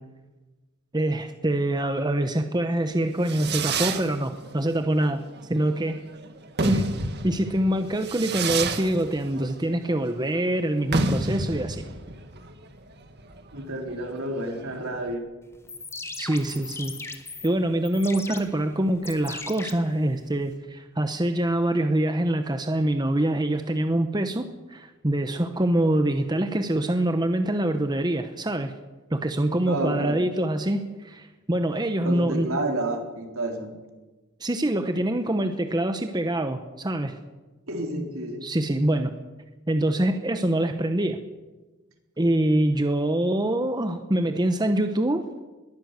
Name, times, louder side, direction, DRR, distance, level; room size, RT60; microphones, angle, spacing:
voice 1, 0.9-6.0 6.6-6.9 7.2-11.9 16.2-17.0 17.4-28.7 29.1-32.5 34.4-37.2 38.4-39.1 39.7-41.2 42.2-45.3, right 1 dB, 20° right, 7 dB, 1.0 m, -25 dB
Fireworks, 2.9-15.1, right 3 dB, 50° right, 2.0 m, -31 dB
voice 2, 13.5-15.3 29.7-30.3 32.0-33.7 37.7-38.5, right 1 dB, 65° right, 3 dB, 3.8 m, -30 dB
sound 1, 15.5-20.5, left 3 dB, 10° left, 1.6 m, -39 dB
21.5 x 15.5 x 8.1 m, 1.2 s
head